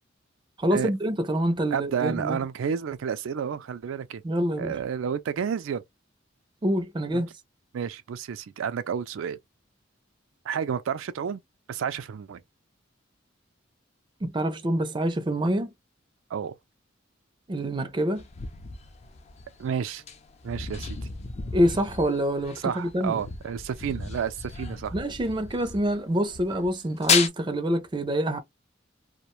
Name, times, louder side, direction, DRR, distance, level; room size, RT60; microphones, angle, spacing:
voice 1, 0.6-2.4 4.2-4.8 6.6-7.3 14.2-15.7 17.5-18.2 21.5-23.2 24.9-28.4, equal, 25° right, 0.4 m, -26 dB
voice 2, 1.7-4.2 4.6-5.8 7.1-7.2 7.7-9.4 10.4-11.4 11.7-12.4 16.3-16.5 19.6-20.0 20.4-21.0 22.6-24.9, right 7 dB, 85° right, 0.4 m, -30 dB
sound 1, 18.2-26.0 26.2-27.3, left 5 dB, 35° left, 0.4 m, -32 dB
2.4 x 2.1 x 2.9 m
head